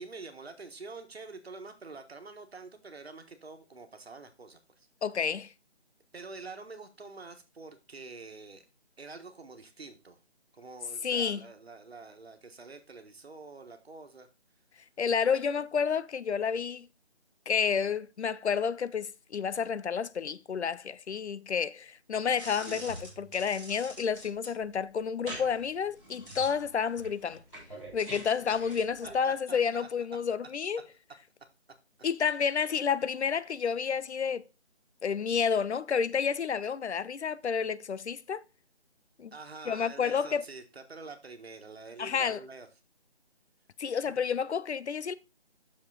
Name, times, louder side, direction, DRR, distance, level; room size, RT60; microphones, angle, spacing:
voice 1, 0.0-4.9 6.1-8.6 9.0-10.2 10.5-14.3 29.2-29.9 39.3-42.7 44.0-44.2, right 3 dB, 65° right, 1.4 m, -46 dB
voice 2, 5.0-5.5 11.0-11.5 15.0-16.8 17.5-27.4 27.9-30.8 32.0-34.4 35.0-38.4 39.2-39.3 39.7-40.4 42.0-42.4 43.8-45.1, left 6 dB, 80° left, 0.6 m, -30 dB
sound 1, 22.4-29.2, right 1 dB, ahead, 1.0 m, -45 dB
6.6 x 5.5 x 3.9 m
figure-of-eight pair, 170°, 34 cm